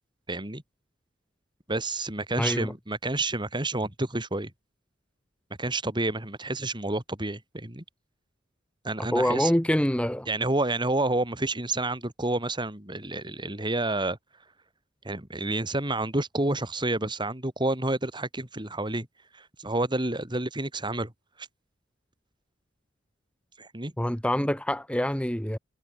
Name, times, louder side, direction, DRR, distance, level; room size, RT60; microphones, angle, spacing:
voice 1, 0.3-0.6 1.7-4.5 5.6-7.8 8.8-9.5 10.3-14.2 15.1-19.1 19.3-21.1 21.4-21.5 23.6-23.9, right 2 dB, 25° right, 3.3 m, -29 dB
voice 2, 2.4-2.7 9.1-10.3 24.0-25.6, equal, 5° left, 1.5 m, -25 dB
head